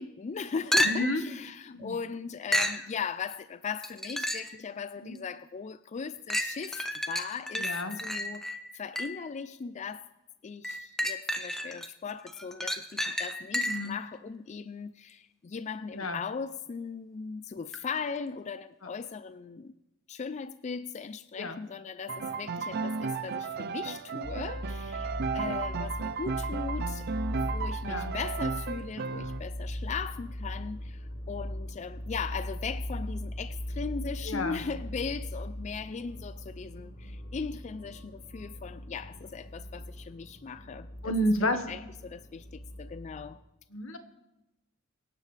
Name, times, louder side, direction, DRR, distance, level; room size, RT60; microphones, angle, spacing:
voice 1, 0.0-7.7 8.0-10.1 10.4-19.7 20.1-27.1 27.5-41.1 41.4-43.4, left 5 dB, 35° left, 13 dB, 0.3 m, -38 dB
sound 1, 0.7-1.3 2.5-2.9 3.8-4.6 5.2-5.3 6.3-9.3 10.6-11.9 12.3-14.0 17.7-17.8, equal, ahead, 0.8 m, -31 dB
voice 2, 0.8-1.2 1.7-1.9 5.0-5.2 7.6-8.0 13.6-13.9 15.9-16.2 21.4-21.6 25.3-25.4 27.8-28.1 34.3-34.6 41.0-41.6 43.7-44.0, left 1 dB, 85° left, 7 dB, 1.3 m, -30 dB
Piano, 22.1-29.4, right 5 dB, 50° right, 0.5 m, -34 dB
sound 2, 24.2-43.4, equal, 60° left, 1.3 m, -39 dB
24.5 x 9.6 x 3.3 m, 0.95 s
head